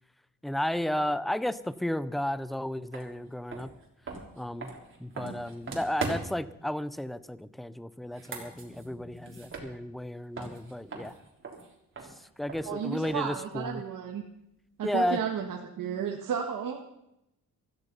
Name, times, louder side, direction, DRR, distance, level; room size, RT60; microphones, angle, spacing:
voice 1, 0.4-3.7 4.4-4.7 5.0-11.1 12.0-13.8 14.8-15.2, left 1 dB, ahead, 16 dB, 0.5 m, -33 dB
sound 1, 2.9-3.1 3.5-6.5 8.0-10.1 10.3-13.4, right 3 dB, 35° right, 3.5 m, -41 dB
voice 2, 12.6-14.2 14.8-16.8, right 7 dB, 65° right, 1 dB, 1.7 m, -33 dB
16.0 x 13.5 x 5.5 m, 0.84 s
cardioid pair, 125°, 34 cm